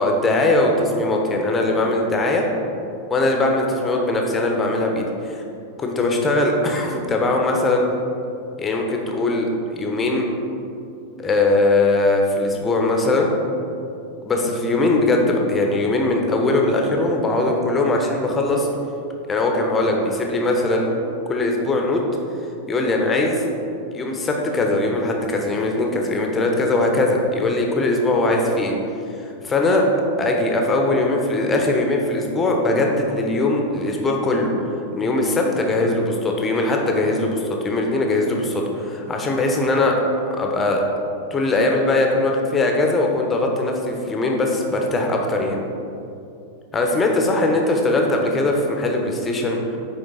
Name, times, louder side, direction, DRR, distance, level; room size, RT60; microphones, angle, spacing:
voice 1, 0.0-2.5 3.1-5.4 5.8-7.9 8.6-10.3 11.2-13.3 14.2-18.7 19.3-20.9 21.3-22.0 22.7-23.4 23.9-28.8 29.2-29.9 30.2-34.5 34.9-39.9 40.3-40.8 41.3-45.6 46.7-49.8, left 2 dB, 20° left, 1 dB, 1.0 m, -20 dB
10.0 x 3.9 x 4.0 m, 2.7 s
figure-of-eight pair, 90°, 0 cm